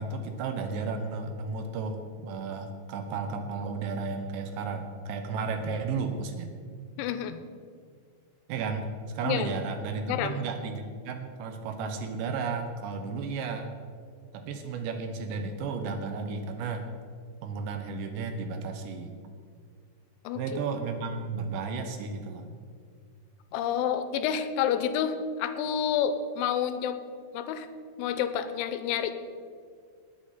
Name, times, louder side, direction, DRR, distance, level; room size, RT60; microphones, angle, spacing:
voice 1, 0.0-6.5 8.5-8.9 9.1-13.7 14.3-16.9 17.4-19.1 20.3-22.5, right 4 dB, 75° right, 6 dB, 3.0 m, -33 dB
voice 2, 7.0-7.4 9.2-9.5 10.1-10.4 20.2-20.6 23.5-27.0 27.3-27.7 28.0-29.1, left 8 dB, 90° left, 10 dB, 3.1 m, -29 dB
19.5 x 8.4 x 4.1 m, 2.1 s
omnidirectional pair, 5.5 m